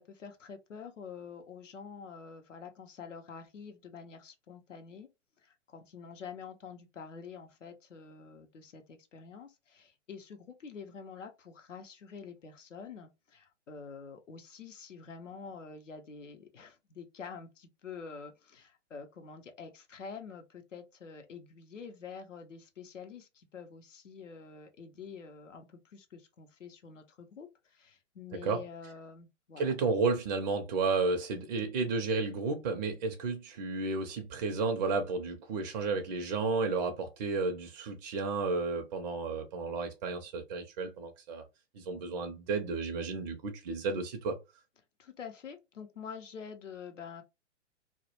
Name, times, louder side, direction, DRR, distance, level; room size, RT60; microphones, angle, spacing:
voice 1, 0.0-5.1 5.4-29.7 45.0-47.2, left 6 dB, 90° left, 0.6 m, -47 dB
voice 2, 29.6-41.4 41.7-44.4, right 4 dB, 40° right, 0.4 m, -32 dB
2.1 x 2.0 x 2.8 m
figure-of-eight pair, 120°, 37 cm